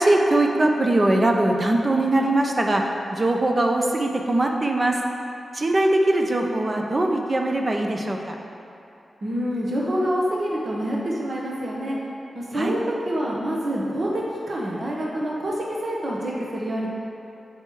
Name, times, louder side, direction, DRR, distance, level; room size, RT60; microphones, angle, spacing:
voice 1, 0.0-5.0 5.5-8.3 12.5-12.8, right 1 dB, 40° right, 2 dB, 0.8 m, -21 dB
voice 2, 9.2-12.0 12.3-12.8 13.0-16.9, equal, 60° right, -4 dB, 1.1 m, -26 dB
8.4 x 3.3 x 4.6 m, 2.7 s
cardioid pair, 45°, 0 cm